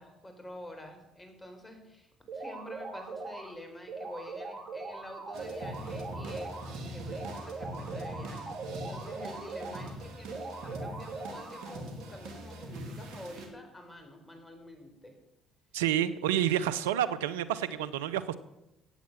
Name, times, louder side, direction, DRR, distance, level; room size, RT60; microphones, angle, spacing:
voice 1, 0.0-15.2, left 1 dB, 15° left, 5 dB, 4.4 m, -48 dB
sound 1, 2.3-3.5 3.9-6.7 7.1-9.9 10.3-11.9, right 3 dB, 50° right, 3.3 m, -41 dB
sound 2, 5.3-13.5, right 1 dB, 70° right, 2.6 m, -42 dB
voice 2, 15.7-18.4, right 11 dB, 85° right, 14 dB, 0.7 m, -29 dB
15.5 x 8.6 x 7.3 m, 0.91 s
hypercardioid pair, 60°, 0 cm